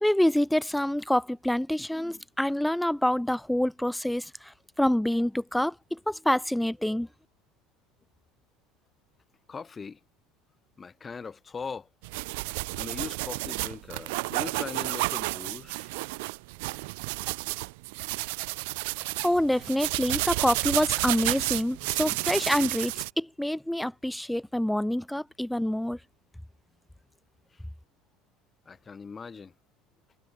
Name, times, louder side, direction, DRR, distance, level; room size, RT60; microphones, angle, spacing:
voice 1, 0.0-7.1 19.2-26.0, left 1 dB, 5° left, 1.7 m, -27 dB
voice 2, 9.5-10.0 10.8-11.9 12.4-15.9 27.5-27.6 28.7-29.5, left 5 dB, 25° left, 2.6 m, -40 dB
sound 1, 12.0-23.1, right 27 dB, 80° right, 2.2 m, -31 dB
supercardioid pair, 100°, 0 cm